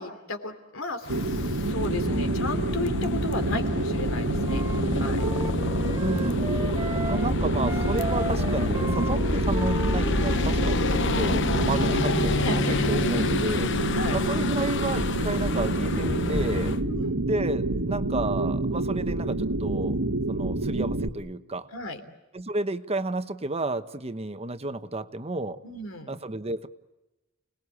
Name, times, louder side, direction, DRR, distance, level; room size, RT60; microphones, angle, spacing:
voice 1, 0.0-4.6 4.9-5.3 12.4-12.9 14.0-14.3 16.8-17.2 21.7-22.0 25.6-26.1, left 2 dB, 80° left, 7 dB, 3.2 m, -34 dB
sound 1, 1.1-16.8, left 3 dB, 65° left, 1.0 m, -29 dB
sound 2, 1.1-21.1, right 2 dB, 85° right, 1.4 m, -28 dB
Wind instrument woodwind instrument, 4.4-7.3 7.6-10.8, right 1 dB, 15° right, 1.5 m, -36 dB
voice 2, 6.0-6.5 7.1-12.6 12.9-13.7 14.1-16.7 17.3-20.0 20.3-21.7 22.3-25.6 26.1-26.7, right 2 dB, 30° right, 11 dB, 1.0 m, -31 dB
30.0 x 19.5 x 8.5 m, 1.1 s
head